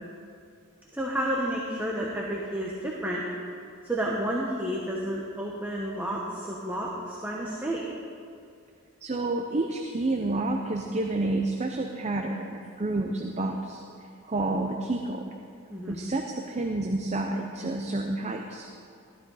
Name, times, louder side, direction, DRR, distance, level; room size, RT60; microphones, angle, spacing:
voice 1, 0.9-3.2 3.8-7.8 15.7-16.0, right 1 dB, 10° right, -3 dB, 1.1 m, -31 dB
voice 2, 9.0-13.8 14.3-15.3 15.9-18.7, right 2 dB, 30° right, 3 dB, 0.7 m, -29 dB
14.5 x 12.5 x 4.1 m, 2.4 s
head